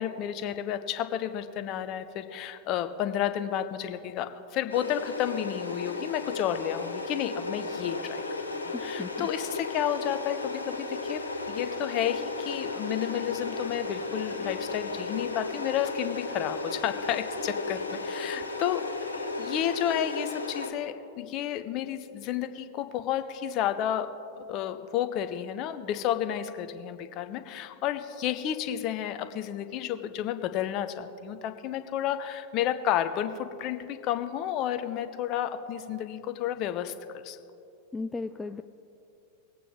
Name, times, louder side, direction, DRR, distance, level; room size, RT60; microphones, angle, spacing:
voice 1, 0.0-8.2 8.8-11.2 11.5-18.8 19.1-24.1 24.4-36.9 37.2-37.4, left 10 dB, 40° left, 10 dB, 0.8 m, -31 dB
sound 1, 4.7-20.7, left 3 dB, 80° left, 1.2 m, -34 dB
voice 2, 8.7-9.3 37.9-38.6, left 3 dB, 10° left, 8 dB, 0.3 m, -36 dB
21.0 x 8.6 x 3.6 m, 2.6 s
figure-of-eight pair, 90°, 0 cm